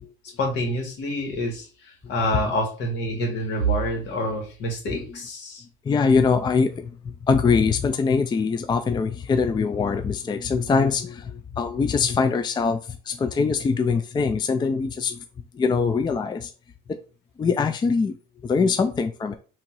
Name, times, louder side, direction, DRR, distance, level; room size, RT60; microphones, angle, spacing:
voice 1, 0.4-1.7 2.1-5.6, equal, 70° left, 1.9 m, -26 dB
voice 2, 5.9-15.2 15.5-16.5 16.9-17.0 17.4-18.1 18.4-19.3, left 5 dB, 25° left, 0.4 m, -23 dB
3.5 x 2.9 x 4.7 m
cardioid pair, 100°, 19 cm